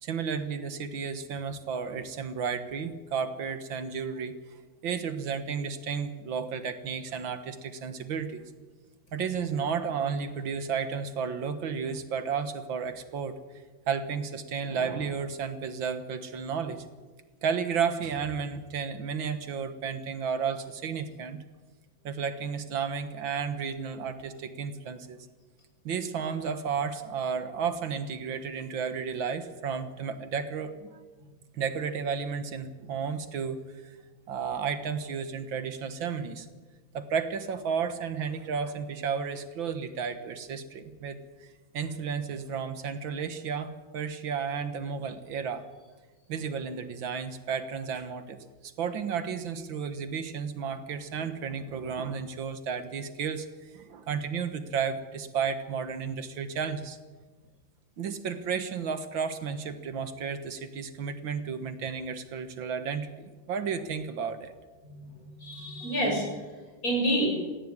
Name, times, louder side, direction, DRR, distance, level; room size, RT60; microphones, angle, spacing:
voice 1, 0.0-4.3 4.8-8.4 9.1-13.4 13.9-16.8 17.4-21.4 22.0-25.3 25.8-30.9 31.5-34.0 34.3-36.5 36.9-45.6 46.3-57.0 58.0-64.5, right 6 dB, 80° right, 10 dB, 2.2 m, -33 dB
voice 2, 64.8-66.4 66.8-67.4, right 1 dB, 45° left, -1 dB, 8.1 m, -28 dB
17.5 x 16.0 x 9.8 m, 1.3 s
omnidirectional pair, 2.1 m